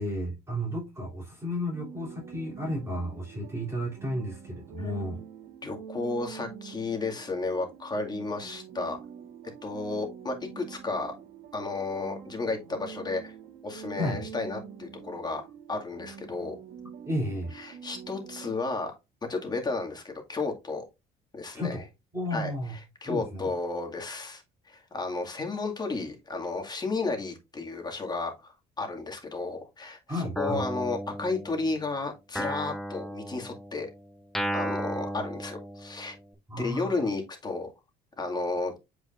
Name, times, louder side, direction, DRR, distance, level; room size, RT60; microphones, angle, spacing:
voice 1, 0.0-5.2 14.0-14.3 17.0-17.5 21.5-21.9 22.1-22.7 23.0-23.5 30.1-30.6 36.5-37.1, equal, 15° right, 3.1 m, -33 dB
sound 1, 1.7-18.5, right 7 dB, 80° right, 1.5 m, -46 dB
voice 2, 5.6-9.0 9.6-11.1 11.5-13.3 13.6-16.5 17.5-18.9 19.3-20.8 21.3-21.8 22.3-22.5 23.0-30.0 30.4-33.9 34.5-36.2 36.6-37.7 38.2-38.7, left 3 dB, 25° left, 2.1 m, -33 dB
Guitar, 30.4-31.9 32.4-36.2, equal, ahead, 1.0 m, -35 dB
7.9 x 4.9 x 2.5 m
cardioid pair, 110°, 17 cm